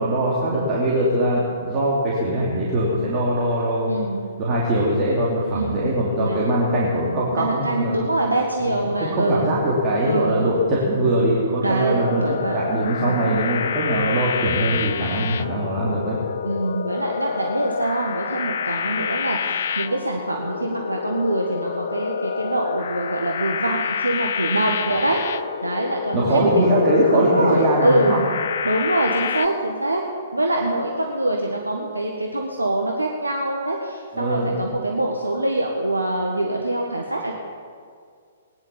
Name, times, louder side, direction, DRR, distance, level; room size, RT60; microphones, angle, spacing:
voice 1, 0.0-4.0 4.4-8.0 9.1-16.2 26.1-28.2 34.1-34.6, right 1 dB, 30° right, -5 dB, 3.1 m, -21 dB
voice 2, 3.9-4.3 5.5-5.9 6.2-6.5 7.3-9.6 10.0-10.6 11.6-12.6 13.0-13.4 16.4-25.2 25.6-26.7 27.1-28.3 28.6-30.0 30.3-37.3, right 1 dB, 85° right, 1 dB, 1.6 m, -24 dB
sound 1, 12.0-29.5, left 7 dB, 55° left, 0.6 m, -28 dB
19.0 x 10.5 x 7.2 m, 2.1 s
figure-of-eight pair, 120°, 0 cm